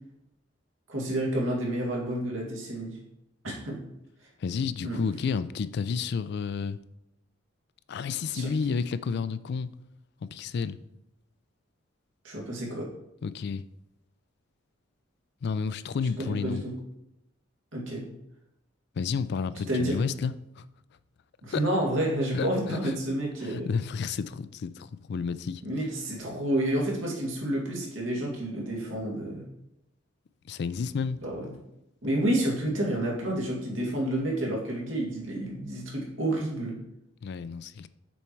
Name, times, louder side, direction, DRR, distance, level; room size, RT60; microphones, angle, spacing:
voice 1, 0.9-3.0 3.4-3.8 4.8-5.0 8.3-8.5 12.2-12.9 16.2-16.7 17.7-18.1 19.7-20.0 21.4-23.7 25.6-29.4 31.2-31.5 32.0-36.8, right 1 dB, 85° right, 2.1 m, -29 dB
voice 2, 4.4-6.8 7.9-9.7 10.2-10.8 13.2-13.6 15.4-16.6 19.0-20.6 21.5-21.6 22.3-22.9 23.4-25.6 30.4-31.2 37.2-37.9, left 5 dB, 55° left, 0.3 m, -31 dB
7.0 x 4.6 x 4.5 m
head